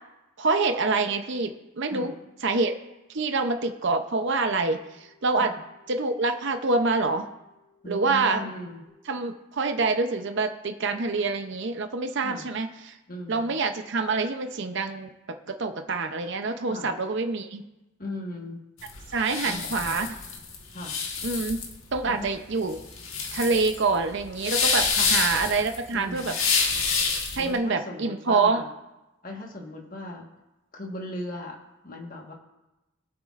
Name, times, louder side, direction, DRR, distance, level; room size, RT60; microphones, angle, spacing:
voice 1, 0.4-2.1 2.4-2.7 3.1-5.5 5.9-7.3 7.9-8.4 9.1-13.0 13.3-15.1 15.6-17.6 19.1-20.1 21.2-21.6 21.9-22.8 23.3-26.3 27.4-28.6, right 3 dB, 55° right, 6 dB, 0.6 m, -26 dB
sound 1, 3.9-8.9, left 4 dB, 15° right, 1.1 m, -63 dB
voice 2, 7.8-8.8 12.2-12.5 13.1-13.5 16.6-16.9 18.0-18.6 19.4-19.9 20.7-20.9 22.0-22.3 25.0-25.1 25.9-26.3 27.4-28.7 29.2-30.2 30.7-31.6 31.8-32.3, left 1 dB, 40° left, 1 dB, 1.5 m, -38 dB
sound 2, 18.8-27.5, left 5 dB, 60° left, 1.6 m, -27 dB
20.5 x 8.1 x 2.5 m, 1.0 s
head